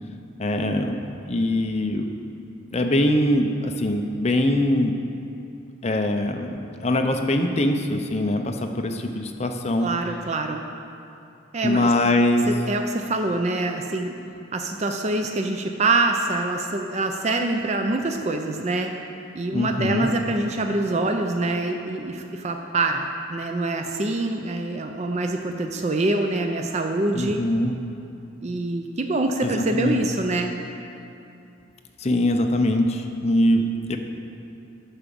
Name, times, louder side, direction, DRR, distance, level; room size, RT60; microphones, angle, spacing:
voice 1, 0.4-1.0 1.3-2.1 2.7-4.9 5.8-9.9 11.6-12.5 19.5-20.1 27.1-27.8 29.4-30.0 32.0-34.0, left 1 dB, 30° left, 4 dB, 0.6 m, -22 dB
voice 2, 9.8-10.6 11.5-11.9 12.5-14.2 14.5-18.9 19.3-27.4 28.4-30.5, right 2 dB, 30° right, 4 dB, 0.4 m, -25 dB
8.8 x 6.0 x 6.9 m, 2.7 s
head